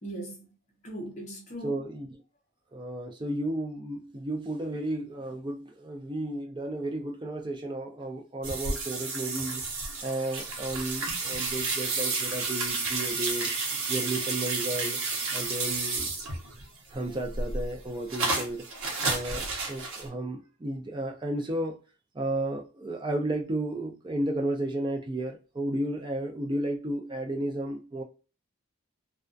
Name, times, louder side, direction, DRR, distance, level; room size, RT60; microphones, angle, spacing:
voice 1, 0.0-0.5 0.8-1.8, right 1 dB, 35° left, 0.7 m, -39 dB
voice 2, 1.6-2.1 2.7-9.6 10.0-13.5 13.9-15.0 15.3-16.1 16.9-18.7 19.0-21.8 22.1-28.0, right 1 dB, 20° right, 0.4 m, -33 dB
sound 1, 8.4-16.6 17.0-20.1, right 3 dB, 75° right, 0.7 m, -31 dB
2.3 x 2.2 x 2.4 m
head